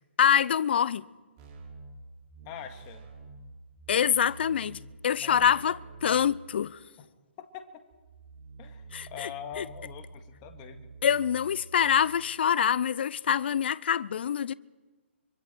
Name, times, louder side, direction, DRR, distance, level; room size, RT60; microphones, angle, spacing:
voice 1, 0.2-1.0 3.9-6.8 8.9-9.3 9.6-9.7 11.0-14.5, left 8 dB, 55° left, 0.6 m, -25 dB
sound 1, 1.4-4.9 5.3-6.3 7.9-12.4, right 3 dB, 30° right, 5.4 m, -48 dB
voice 2, 2.5-3.1 5.2-5.8 7.0-7.1 7.4-7.8 8.6-10.9, left 8 dB, 30° left, 2.0 m, -43 dB
25.5 x 24.0 x 4.6 m
hypercardioid pair, 145°, 7 cm